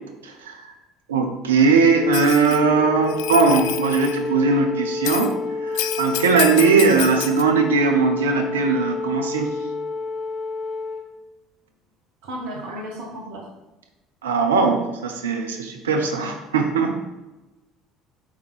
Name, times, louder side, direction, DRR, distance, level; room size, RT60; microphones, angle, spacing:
voice 1, 0.2-0.5 1.1-9.5 14.2-17.0, right 4 dB, 85° right, 4 dB, 0.7 m, -19 dB
Wind instrument woodwind instrument, 1.9-11.0, left 3 dB, 5° left, 1.7 m, -29 dB
Bell, 2.1-2.6 3.1-4.2 5.0-5.3 5.7-7.4, left 12 dB, 70° left, 0.3 m, -29 dB
voice 2, 12.2-13.4, equal, 70° right, -1 dB, 1.7 m, -34 dB
5.8 x 3.7 x 4.6 m, 1.1 s
hypercardioid pair, 65°, 0 cm